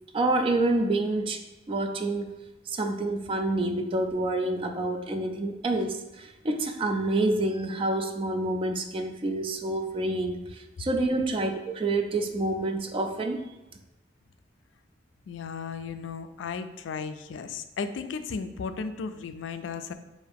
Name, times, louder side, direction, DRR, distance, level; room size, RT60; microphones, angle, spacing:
voice 1, 0.1-1.4 1.7-2.3 2.7-13.5, right 2 dB, 30° right, 6 dB, 0.3 m, -28 dB
voice 2, 15.3-19.9, left 5 dB, 80° left, 9 dB, 0.3 m, -35 dB
4.6 x 2.6 x 3.4 m, 1.0 s
head